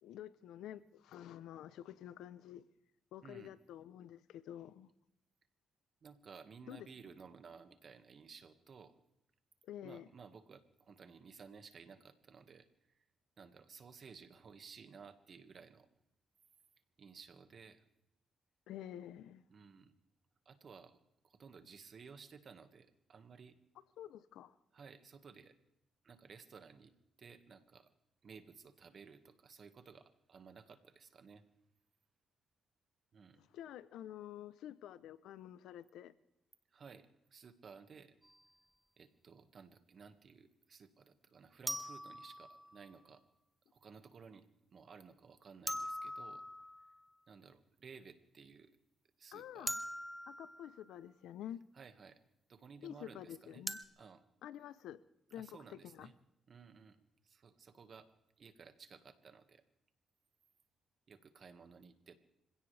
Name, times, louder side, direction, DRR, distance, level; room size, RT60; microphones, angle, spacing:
voice 1, 0.0-2.6 3.1-4.9 6.7-6.9 9.6-10.1 18.7-19.4 24.0-24.5 33.5-36.1 49.3-49.8 50.3-51.6 52.8-53.8 54.4-55.0 55.3-56.1, left 11 dB, 85° left, 16 dB, 0.7 m, -49 dB
voice 2, 3.2-3.5 6.0-8.9 9.8-13.0 13.4-15.9 17.0-17.8 19.5-19.9 20.5-23.6 24.7-25.6 26.0-26.9 27.2-27.9 28.2-31.5 33.1-33.4 36.7-38.2 39.0-43.2 43.7-46.4 47.3-48.8 49.2-49.8 51.7-52.2 52.5-53.6 54.0-54.3 55.3-56.1 56.5-58.1 58.4-59.6 61.1-62.2, right 5 dB, 50° right, 8 dB, 1.8 m, -56 dB
sound 1, 38.2-38.4 41.7-42.9 45.7-47.0 49.7-50.9 53.7-53.8, equal, 5° right, 1.0 m, -42 dB
25.5 x 16.5 x 3.4 m, 0.84 s
cardioid pair, 90°, 0 cm